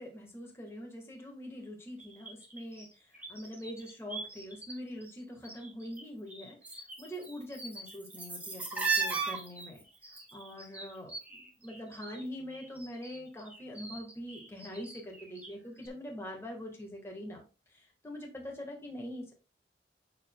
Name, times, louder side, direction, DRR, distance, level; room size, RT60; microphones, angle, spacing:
voice 1, 0.0-19.3, equal, 15° left, 0 dB, 1.5 m, -44 dB
sound 1, 2.0-4.7 5.0-6.0 6.3-12.2 12.5-15.5 15.8-15.9, right 4 dB, 10° right, 1.5 m, -38 dB
7.5 x 6.6 x 2.3 m, 0.33 s
head